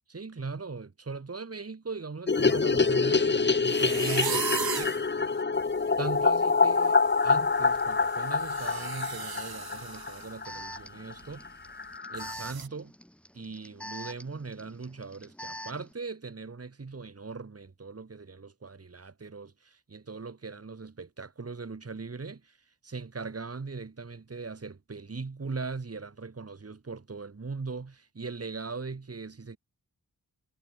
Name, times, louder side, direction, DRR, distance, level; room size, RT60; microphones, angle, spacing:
voice 1, 0.1-5.2 6.0-11.5 12.1-12.9 13.3-22.6 22.8-29.6, right 4 dB, 40° right, 2.2 m, -39 dB
sound 1, 2.3-10.5 10.8-10.9 11.1-11.2 11.5-11.6 11.8-12.3, left 4 dB, 30° left, 0.9 m, -26 dB
sound 2, 3.7-5.0 5.6-5.7 6.1-6.4 6.6-10.3 10.6-10.8 11.2-11.3 12.1-12.7, right 7 dB, 75° right, 1.2 m, -37 dB
Alarm, 7.7-7.8 8.5-15.9, equal, 5° left, 2.2 m, -45 dB
wide cardioid pair, 80°, 36 cm